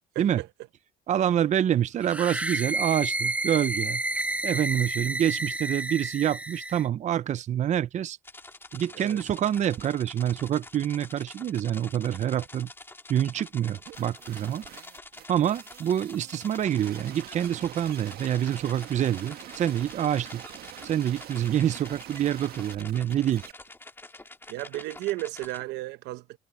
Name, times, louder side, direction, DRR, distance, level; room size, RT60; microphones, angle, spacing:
voice 1, 0.1-0.5 8.9-9.2 24.5-26.4, right 17 dB, 90° right, 1.0 m, -34 dB
voice 2, 1.1-4.0 4.4-8.2 8.7-12.7 13.1-14.6 15.3-20.4 20.8-23.4, right 10 dB, 45° right, 0.6 m, -26 dB
sound 1, 2.0-6.9, right 2 dB, 10° right, 1.1 m, -30 dB
sound 2, 8.2-25.6, left 2 dB, 15° left, 2.0 m, -47 dB
sound 3, 13.9-23.5, right 12 dB, 65° right, 1.5 m, -45 dB
cardioid pair, 110°, 17 cm